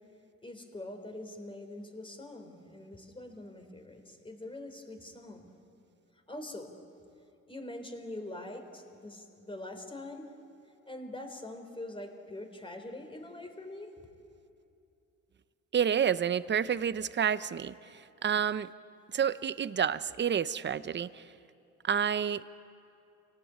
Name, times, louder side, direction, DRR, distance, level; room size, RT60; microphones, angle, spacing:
voice 1, 0.4-5.5 6.3-6.7 7.5-10.3 10.8-13.9, left 1 dB, 15° left, 5 dB, 3.4 m, -44 dB
voice 2, 15.7-18.7 19.1-21.2 21.8-22.4, right 8 dB, 35° right, 15 dB, 0.7 m, -29 dB
26.5 x 18.5 x 8.8 m, 2.7 s
cardioid pair, 90°, 30 cm